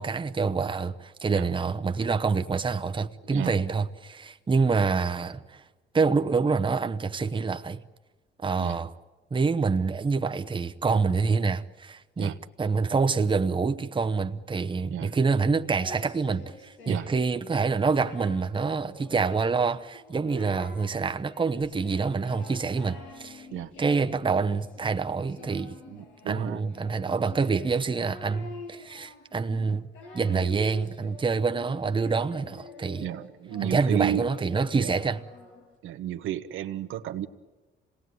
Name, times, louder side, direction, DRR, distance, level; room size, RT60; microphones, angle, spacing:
voice 1, 0.0-5.6 5.9-7.8 8.4-8.9 9.3-23.5 23.8-25.8 26.3-29.9 30.1-33.1 33.6-35.2, right 4 dB, 25° right, 1.0 m, -26 dB
Singing, 15.8-17.3 17.7-18.4 18.8-19.6 19.9-20.8 21.2-35.7, left 3 dB, 90° left, 7.0 m, -47 dB
voice 2, 25.9-26.6 29.7-29.8 30.3-30.6 33.0-34.3 34.7-34.9 35.8-37.3, right 11 dB, 85° right, 1.1 m, -32 dB
26.5 x 19.0 x 9.5 m
cardioid pair, 90°, 20 cm